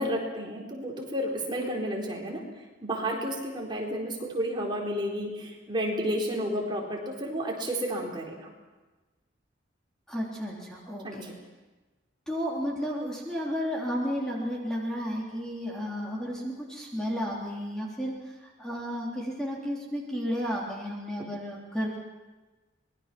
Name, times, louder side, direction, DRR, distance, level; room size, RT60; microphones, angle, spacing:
voice 1, 0.0-2.4 2.8-8.5 11.0-11.2, equal, 25° right, -2 dB, 4.1 m, -31 dB
voice 2, 10.1-11.3 12.3-21.9, equal, 5° left, -4 dB, 3.4 m, -33 dB
26.5 x 21.0 x 6.0 m, 1.2 s
head